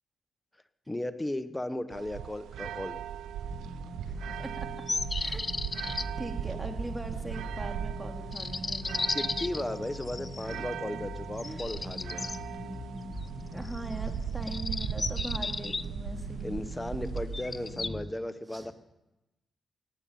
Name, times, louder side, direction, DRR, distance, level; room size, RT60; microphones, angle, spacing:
voice 1, 0.9-3.0 9.1-12.3 16.4-18.7, left 1 dB, 15° left, 12 dB, 1.1 m, -35 dB
sound 1, 1.9-17.7, right 9 dB, 90° right, 0.5 m, -39 dB
sound 2, 3.4-18.1, equal, 75° left, 3.4 m, -42 dB
voice 2, 4.1-4.7 5.1-5.4 5.8-9.4 10.4-10.7 11.4-11.6 13.5-16.7 18.5-18.7, right 1 dB, 20° right, 4 dB, 2.9 m, -41 dB
sound 3, 4.9-6.1 8.3-10.6 11.4-12.4 13.6-14.0 14.4-15.8 17.2-17.9, left 3 dB, 40° left, 0.7 m, -34 dB
18.0 x 9.2 x 8.7 m, 1.0 s
cardioid pair, 60°, 0 cm